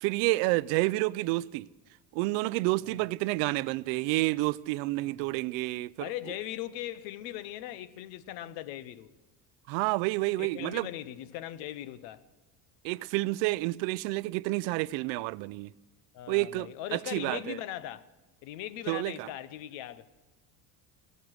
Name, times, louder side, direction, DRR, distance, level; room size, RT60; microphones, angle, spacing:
voice 1, 0.0-1.7 2.1-6.1 9.7-10.9 12.8-15.7 16.3-17.6 18.9-19.3, right 21 dB, 85° right, 0.6 m, -29 dB
voice 2, 5.0-5.3 6.0-9.1 10.4-12.2 16.1-18.1 18.4-20.1, left 13 dB, 85° left, 1.0 m, -39 dB
16.5 x 13.5 x 6.3 m
cardioid pair, 155°, 45 cm